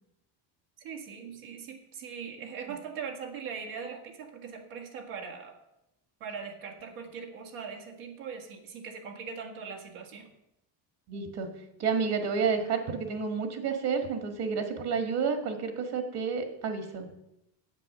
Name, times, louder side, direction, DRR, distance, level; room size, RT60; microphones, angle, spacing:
voice 1, 0.8-5.6 6.2-10.3, right 6 dB, 80° right, 2 dB, 2.1 m, -41 dB
voice 2, 11.1-11.5 11.8-17.1, right 5 dB, 50° right, 6 dB, 1.8 m, -30 dB
9.6 x 7.9 x 6.7 m, 0.86 s
cardioid pair, 145°, 49 cm